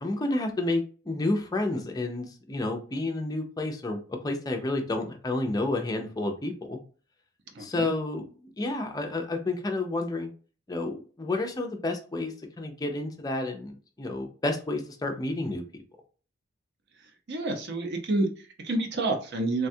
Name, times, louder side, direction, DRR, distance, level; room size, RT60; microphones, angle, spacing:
voice 1, 0.0-6.8 7.6-10.3 10.7-15.8, left 2 dB, 20° left, 3 dB, 0.4 m, -30 dB
voice 2, 7.5-7.9 17.3-19.7, right 2 dB, 55° right, 5 dB, 0.6 m, -29 dB
3.4 x 2.2 x 2.6 m, 0.38 s
head